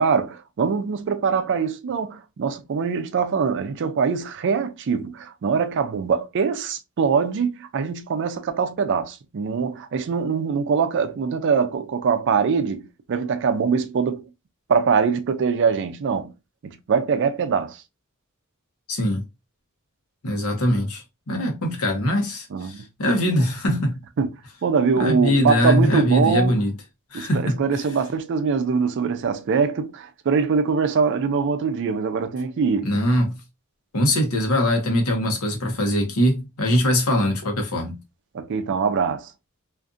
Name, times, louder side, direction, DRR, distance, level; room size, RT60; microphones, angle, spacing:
voice 1, 0.0-14.2 14.7-16.3 16.6-17.8 22.5-22.8 24.2-24.3 24.6-26.6 27.1-33.0 38.3-39.3, right 5 dB, 55° right, 0.4 m, -23 dB
voice 2, 18.9-19.2 20.2-24.0 25.0-26.7 27.1-27.6 32.8-33.4 33.9-38.0, equal, 85° left, 0.9 m, -22 dB
2.5 x 2.5 x 2.4 m
head